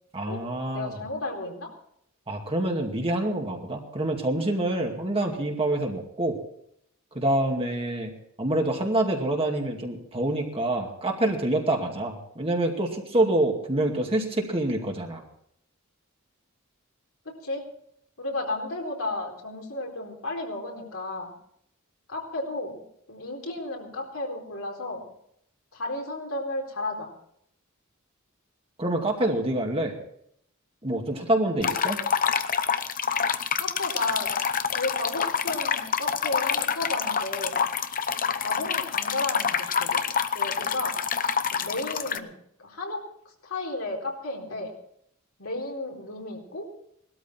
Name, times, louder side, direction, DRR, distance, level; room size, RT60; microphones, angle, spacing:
voice 1, 0.1-1.0 2.3-6.4 7.1-15.2 28.8-30.0 30.8-32.0, right 1 dB, 25° right, 1 dB, 2.3 m, -26 dB
voice 2, 0.7-1.7 17.2-17.6 18.2-21.3 22.1-22.8 23.1-25.1 25.7-27.1 33.6-34.3 34.7-37.6 38.3-40.0 40.3-41.0 41.5-42.3 42.6-43.0 43.4-44.7 45.4-46.7, left 2 dB, 75° left, 0 dB, 4.1 m, -33 dB
sound 1, 31.6-42.2, left 7 dB, 40° left, 0.8 m, -27 dB
19.5 x 13.0 x 4.4 m, 0.71 s
head